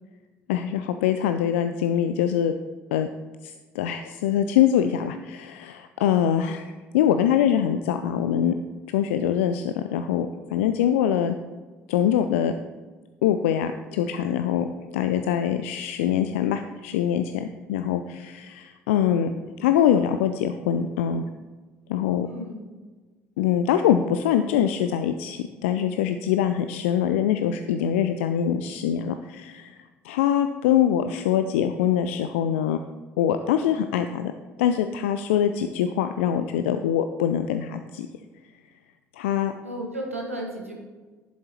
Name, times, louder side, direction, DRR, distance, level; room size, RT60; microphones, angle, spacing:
voice 1, 0.5-2.5 2.9-3.1 3.4-8.5 8.9-11.3 11.9-12.5 13.2-14.7 14.9-19.3 19.6-21.2 21.9-22.3 23.4-29.7 30.0-32.8 33.2-34.3 34.6-38.1 39.2-39.5, left 9 dB, 70° left, 8 dB, 0.3 m, -23 dB
voice 2, 22.2-22.6 39.6-40.7, right 1 dB, 90° right, 0 dB, 1.2 m, -33 dB
11.0 x 7.1 x 3.0 m, 1.3 s
figure-of-eight pair, 50°, 7 cm